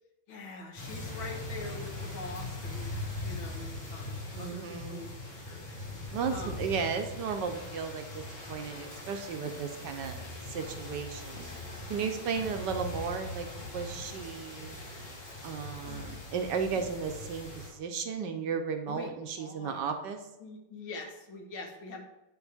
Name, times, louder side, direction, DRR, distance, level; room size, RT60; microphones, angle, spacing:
voice 1, 0.3-5.1 5.5-5.7 6.0-6.6 12.3-12.7 15.8-16.1 16.7-16.9 18.9-19.1 19.4-19.9 20.4-22.1, left 3 dB, 80° left, 1 dB, 2.1 m, -44 dB
sound 1, 0.8-17.7, left 2 dB, 65° left, 3.3 m, -41 dB
voice 2, 4.1-5.0 6.1-11.5 11.9-13.5 13.7-14.8 15.4-20.2, right 6 dB, 70° right, 6 dB, 1.2 m, -35 dB
9.9 x 5.4 x 3.5 m, 0.97 s
omnidirectional pair, 2.1 m